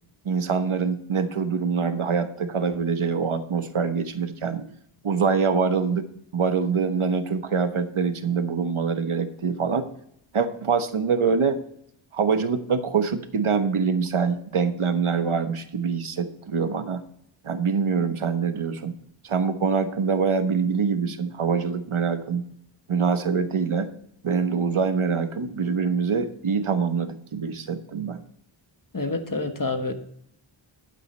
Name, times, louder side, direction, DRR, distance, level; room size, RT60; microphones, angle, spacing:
voice 1, 0.2-4.7 5.0-6.1 6.3-9.9 10.3-11.6 12.1-17.0 17.4-19.0 19.2-22.4 22.9-23.9 24.2-28.2, right 5 dB, 75° right, 9 dB, 1.2 m, -24 dB
voice 2, 28.9-29.9, left 3 dB, 40° left, 6 dB, 1.5 m, -27 dB
12.5 x 9.1 x 3.3 m, 0.68 s
wide cardioid pair, 65°, 50 cm